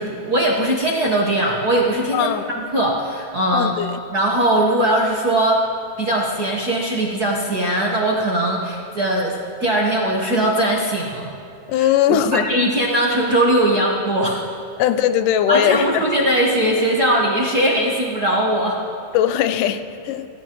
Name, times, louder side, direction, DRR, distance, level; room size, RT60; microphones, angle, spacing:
voice 1, 0.0-2.3 2.7-3.7 4.1-5.6 6.0-11.3 11.7-14.4 15.5-18.8, right 1 dB, 55° right, -3 dB, 1.1 m, -20 dB
voice 2, 2.1-2.5 3.5-4.0 11.7-12.5 14.8-16.1 19.1-20.3, left 10 dB, 90° left, 11 dB, 2.3 m, -19 dB
24.5 x 17.0 x 3.1 m, 2.6 s
omnidirectional pair, 3.6 m